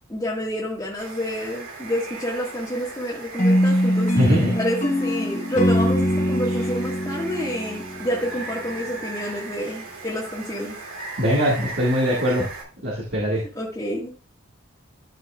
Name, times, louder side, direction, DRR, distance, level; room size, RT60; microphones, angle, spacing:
voice 1, 0.1-10.8 13.6-14.2, equal, 15° left, -7 dB, 1.7 m, -28 dB
Water, 1.0-12.6, right 3 dB, 85° right, 2.6 m, -38 dB
sound 1, 3.4-8.5, equal, 35° left, 1.1 m, -23 dB
voice 2, 4.2-4.6 11.2-12.5 12.8-13.4, equal, 50° right, -4 dB, 2.0 m, -21 dB
13.0 x 5.8 x 2.4 m, 0.34 s
head